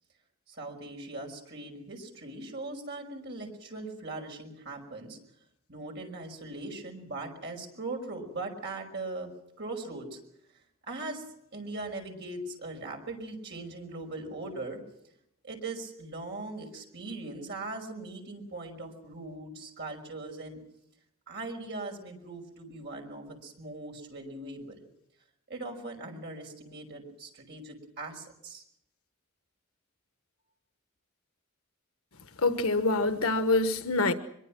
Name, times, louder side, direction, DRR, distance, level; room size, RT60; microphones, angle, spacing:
voice 1, 0.5-5.2 5.7-9.3 9.6-10.2 10.9-11.2 11.5-14.8 15.4-20.6 21.3-24.8 25.5-28.6, right 2 dB, 50° right, 2 dB, 5.6 m, -40 dB
voice 2, 32.4-34.1, left 3 dB, 85° left, 9 dB, 1.3 m, -25 dB
24.0 x 23.0 x 6.2 m, 0.76 s
head